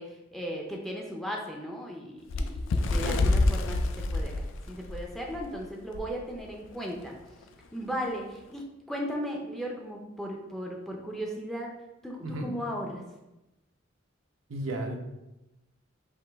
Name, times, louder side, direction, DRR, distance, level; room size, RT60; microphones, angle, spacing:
voice 1, 0.0-7.2 7.7-11.7 12.0-13.0, equal, ahead, -1 dB, 0.5 m, -36 dB
Bird, 2.3-5.5 5.9-6.1 6.4-6.6 7.4-7.5, left 2 dB, 70° left, 0.4 m, -27 dB
voice 2, 12.2-12.6 14.5-15.0, right 1 dB, 85° right, 2 dB, 0.7 m, -33 dB
4.9 x 3.0 x 3.4 m, 0.97 s
head